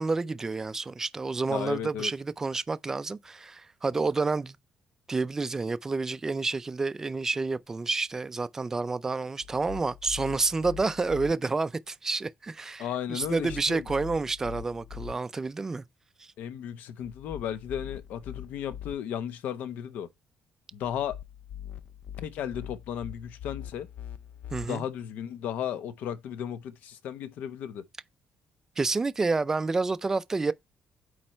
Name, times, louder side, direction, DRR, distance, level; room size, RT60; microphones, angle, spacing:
voice 1, 0.0-4.6 5.1-15.8 16.2-16.3 24.5-24.8 28.8-30.5, right 3 dB, 15° right, 0.3 m, -29 dB
voice 2, 1.5-2.1 12.8-13.9 16.4-20.1 20.7-21.2 22.2-23.9 24.6-27.8, left 9 dB, 85° left, 0.8 m, -35 dB
sound 1, 9.4-11.3 13.2-15.1 17.0-18.9 20.8-24.6, left 10 dB, 65° left, 0.4 m, -43 dB
8.7 x 3.2 x 4.3 m
cardioid pair, 165°, 3 cm